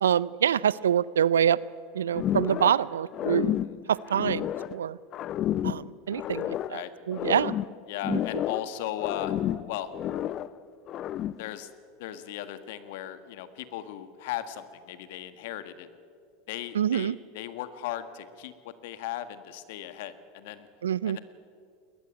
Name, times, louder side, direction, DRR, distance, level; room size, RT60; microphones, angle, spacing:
voice 1, 0.0-1.6 1.9-3.5 3.9-5.0 5.6-6.8 7.1-7.5 8.1-8.2 16.8-17.2 20.8-21.2, right 9 dB, 80° right, 22 dB, 0.5 m, -25 dB
sound 1, 2.1-2.9 3.1-4.8 5.1-6.8 7.1-8.7 9.0-10.5 10.9-11.5, left 12 dB, 45° left, 0.6 m, -31 dB
voice 2, 7.9-9.4 9.7-9.9 11.4-11.7 12.0-15.9 16.5-20.7 21.1-21.2, left 12 dB, 65° left, 11 dB, 1.6 m, -37 dB
20.5 x 20.5 x 9.0 m, 2.3 s
hypercardioid pair, 85°, 0 cm